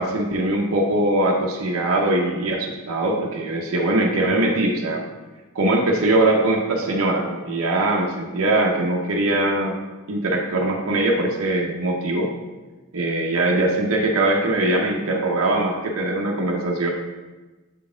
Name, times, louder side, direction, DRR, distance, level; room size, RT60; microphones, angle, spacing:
voice 1, 0.0-5.0 5.5-9.8 10.1-12.3 12.9-16.9, right 2 dB, 80° right, -1 dB, 0.7 m, -21 dB
7.4 x 4.0 x 3.8 m, 1.2 s
head